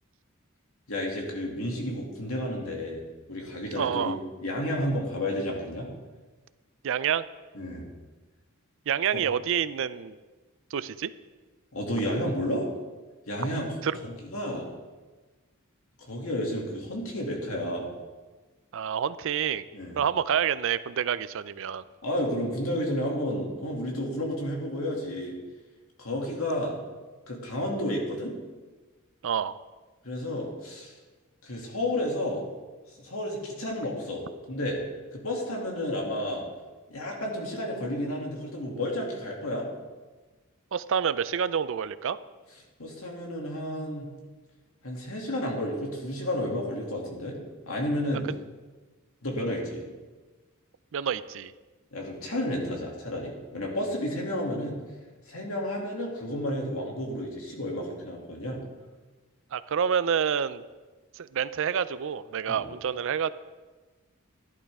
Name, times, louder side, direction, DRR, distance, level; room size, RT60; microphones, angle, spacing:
voice 1, 0.9-3.0 3.3-5.9 7.5-7.9 9.1-9.2 11.7-12.7 13.3-13.7 14.0-14.7 16.0-17.9 19.7-20.0 22.0-25.3 26.0-26.7 27.3-28.3 30.0-30.9 31.4-32.4 33.0-34.8 35.1-36.4 36.9-39.7 42.8-44.1 44.8-47.4 47.7-48.3 49.2-49.8 51.9-54.8 55.3-58.6 62.5-62.7, left 1 dB, 75° left, -1 dB, 2.5 m, -31 dB
voice 2, 3.8-4.2 6.8-7.2 8.9-10.1 10.7-11.1 13.8-14.0 18.7-19.6 20.0-21.8 29.2-29.6 40.7-42.2 50.9-51.5 59.5-60.6 61.2-63.3, right 8 dB, 65° right, 15 dB, 0.4 m, -28 dB
13.0 x 11.0 x 3.6 m, 1.3 s
head